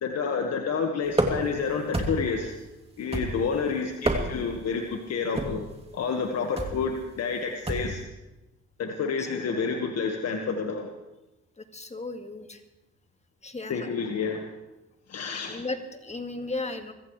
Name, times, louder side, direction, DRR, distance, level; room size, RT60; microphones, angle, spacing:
voice 1, 0.0-2.5 3.0-5.6 5.9-8.0 8.8-10.9 13.7-14.5 15.1-15.6, left 5 dB, 60° left, 3 dB, 1.7 m, -29 dB
sound 1, 1.1-1.6 1.9-2.4 3.1-3.6 3.9-4.6 5.4-5.7 6.6-6.8 7.7-8.0, right 1 dB, 20° right, 2.7 m, -28 dB
voice 2, 11.6-12.6 13.4-13.9 15.4-16.9, left 3 dB, 20° left, 7 dB, 1.9 m, -35 dB
25.0 x 14.5 x 3.3 m, 0.98 s
supercardioid pair, 65°, 30 cm